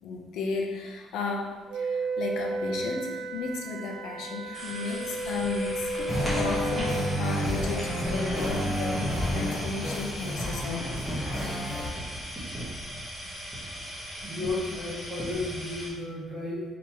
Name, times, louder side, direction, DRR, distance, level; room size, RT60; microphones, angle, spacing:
voice 1, 0.0-11.0, left 3 dB, 65° left, 1 dB, 0.6 m, -34 dB
Wind instrument woodwind instrument, 1.7-7.2, right 2 dB, 45° right, 0.4 m, -33 dB
sound 1, 4.5-15.9, equal, ahead, 1.0 m, -37 dB
sound 2, 6.1-11.9, equal, 20° left, 0.9 m, -30 dB
voice 2, 14.2-16.6, left 2 dB, 20° right, -6 dB, 1.2 m, -33 dB
3.9 x 2.9 x 4.6 m, 1.2 s
cardioid pair, 175°, 0 cm